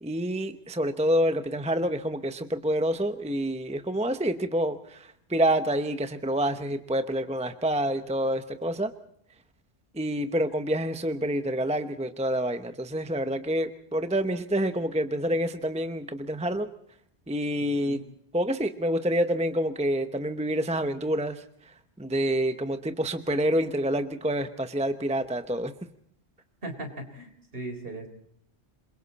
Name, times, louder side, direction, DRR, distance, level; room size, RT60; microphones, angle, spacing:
voice 1, 0.0-8.9 9.9-16.7 17.3-18.0 18.3-21.4 22.0-25.7, right 1 dB, 5° right, 9 dB, 0.8 m, -27 dB
voice 2, 17.6-18.0 26.6-28.1, right 2 dB, 55° right, 5 dB, 4.0 m, -38 dB
28.0 x 22.5 x 4.2 m, 0.67 s
omnidirectional pair, 1.2 m